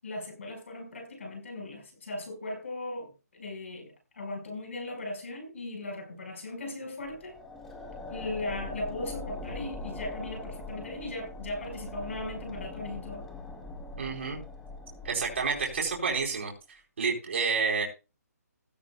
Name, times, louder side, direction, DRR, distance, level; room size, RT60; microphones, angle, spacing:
voice 1, 0.0-7.4 8.1-13.3, left 2 dB, 50° left, 5.1 m, -38 dB
sound 1, 7.0-16.4, left 2 dB, 5° left, 0.5 m, -42 dB
voice 2, 14.0-14.4 15.0-16.5 17.0-17.8, right 5 dB, 45° right, 4.4 m, -29 dB
15.0 x 14.5 x 2.3 m
hypercardioid pair, 175°, 9 cm